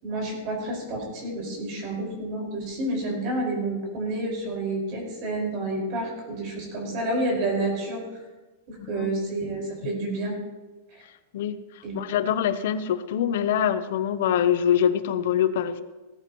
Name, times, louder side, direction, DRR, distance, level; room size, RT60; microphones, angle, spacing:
voice 1, 0.0-8.2 8.7-10.3 10.9-11.0 11.8-12.0, right 2 dB, 40° right, -1 dB, 5.3 m, -29 dB
voice 2, 11.9-15.8, left 9 dB, 60° left, 12 dB, 0.9 m, -24 dB
17.5 x 14.5 x 3.1 m, 1.2 s
supercardioid pair, 160°, 0 cm